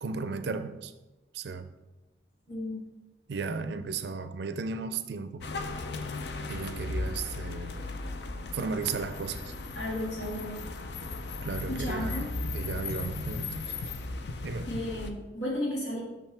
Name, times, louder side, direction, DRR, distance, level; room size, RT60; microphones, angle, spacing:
voice 1, 0.0-0.9 1.3-1.7 3.3-5.5 6.5-7.8 8.5-9.5 11.4-13.7 14.4-14.7, right 4 dB, 65° right, 0.4 m, -35 dB
sound 1, 5.4-15.1, left 3 dB, 65° left, 0.5 m, -36 dB
voice 2, 9.8-10.6 11.7-12.3 14.7-16.0, left 1 dB, 80° left, 2.2 m, -33 dB
6.0 x 5.7 x 3.4 m
head